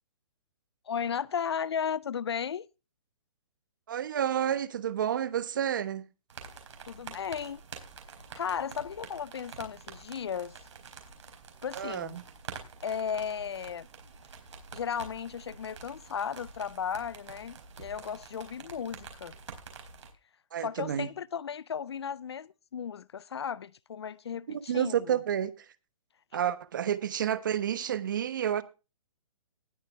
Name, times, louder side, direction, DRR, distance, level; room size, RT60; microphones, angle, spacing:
voice 1, 0.9-2.7 6.9-7.6 8.3-10.5 11.6-12.2 12.8-13.9 14.7-19.3 20.6-25.2, left 7 dB, 50° left, 0.5 m, -35 dB
voice 2, 3.9-6.0 11.7-12.2 20.5-21.1 24.5-25.5 26.3-28.6, right 9 dB, 35° right, 1.0 m, -30 dB
sound 1, 6.3-20.1, right 5 dB, 60° right, 4.2 m, -47 dB
19.0 x 6.7 x 3.3 m
hypercardioid pair, 180°, 17 cm